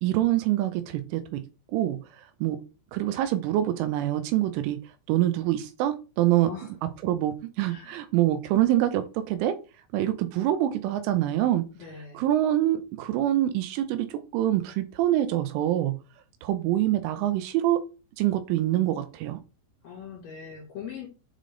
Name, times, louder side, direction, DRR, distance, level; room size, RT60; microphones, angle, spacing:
voice 1, 0.0-1.4 1.7-2.6 2.9-4.8 5.1-6.5 7.0-9.6 9.9-11.6 12.1-16.0 16.4-17.8 18.2-19.4, right 13 dB, 85° right, 10 dB, 3.0 m, -25 dB
voice 2, 6.4-6.7 7.6-8.0 11.8-12.2 19.8-21.1, left 7 dB, 55° left, -2 dB, 3.6 m, -41 dB
7.6 x 3.4 x 3.8 m, 0.32 s
omnidirectional pair, 5.8 m